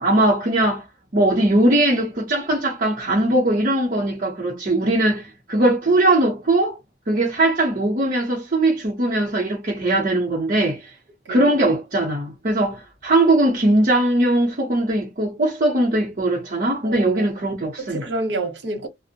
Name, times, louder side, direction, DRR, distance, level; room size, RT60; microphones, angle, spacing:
voice 1, 0.0-0.8 1.1-6.8 7.1-10.9 11.3-18.0, right 1 dB, 50° right, 0.7 m, -20 dB
voice 2, 11.3-11.6 16.8-17.3 17.8-18.9, right 2 dB, 80° right, 0.8 m, -28 dB
2.4 x 2.0 x 2.7 m
head